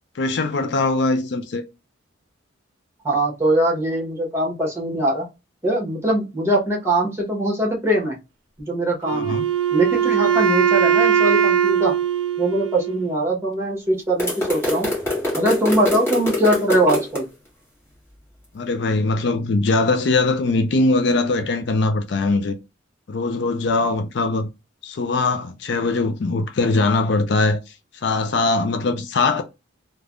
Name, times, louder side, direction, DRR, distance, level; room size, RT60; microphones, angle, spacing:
voice 1, 0.2-1.6 9.1-9.4 18.5-22.6 23.1-24.5 24.8-27.6 28.0-29.4, left 3 dB, 60° left, 0.4 m, -21 dB
voice 2, 3.0-5.3 5.6-8.2 8.6-9.4 9.7-11.9 12.4-14.9 15.3-17.2, right 1 dB, 15° right, 1.1 m, -21 dB
Wind instrument woodwind instrument, 9.1-13.1, right 8 dB, 70° right, 0.5 m, -20 dB
sound 1, 14.2-17.2, left 2 dB, 10° left, 1.5 m, -24 dB
3.3 x 2.2 x 2.4 m
head